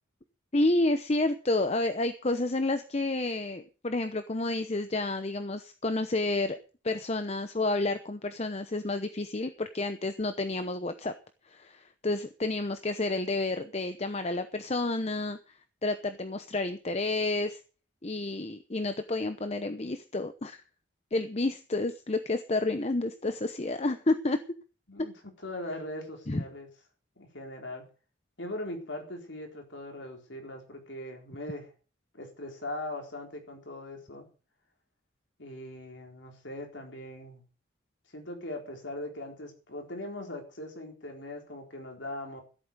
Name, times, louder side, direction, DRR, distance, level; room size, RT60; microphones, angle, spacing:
voice 1, 0.5-6.6 6.8-11.1 11.4-15.6 15.8-17.6 18.0-20.6 21.1-24.4 26.3-26.4, left 2 dB, 35° left, 9 dB, 0.8 m, -30 dB
voice 2, 25.4-26.7 27.2-27.9 28.4-31.7 32.1-34.3 35.4-37.4 38.1-42.4, left 1 dB, 70° left, 3 dB, 4.1 m, -40 dB
14.5 x 8.6 x 6.6 m, 0.37 s
head